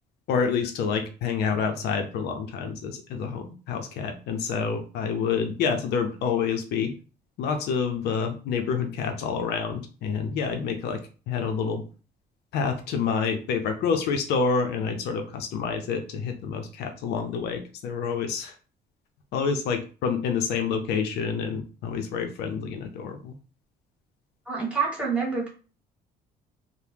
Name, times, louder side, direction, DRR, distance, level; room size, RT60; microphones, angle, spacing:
voice 1, 0.3-6.9 7.4-11.0 11.3-11.8 12.5-18.5 19.3-23.3, left 6 dB, 75° left, 5 dB, 0.5 m, -28 dB
voice 2, 24.5-25.5, right 5 dB, 5° right, -3 dB, 1.3 m, -27 dB
2.7 x 2.0 x 3.3 m, 0.36 s
cardioid pair, 110°, 17 cm